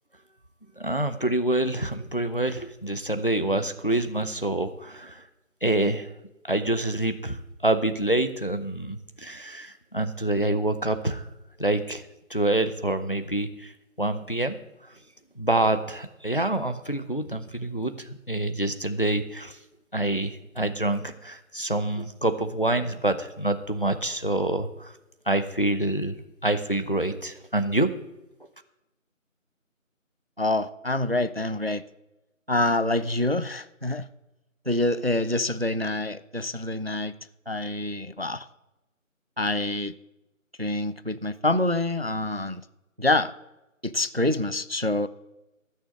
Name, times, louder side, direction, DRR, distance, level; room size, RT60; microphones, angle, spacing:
voice 1, 0.8-5.2 5.6-6.1 6.5-7.4 7.6-11.2 11.6-12.0 12.3-13.7 14.0-14.6 15.4-19.6 19.9-24.9 25.3-26.2 26.4-27.9, right 1 dB, 40° left, 10 dB, 0.7 m, -26 dB
voice 2, 30.4-31.8 32.5-34.1 34.7-37.1 37.5-38.5 39.4-39.9 40.6-42.6 43.0-43.3 43.8-45.1, left 2 dB, 50° right, 15 dB, 0.4 m, -26 dB
14.0 x 6.5 x 7.5 m, 0.96 s
figure-of-eight pair, 180°, 40 cm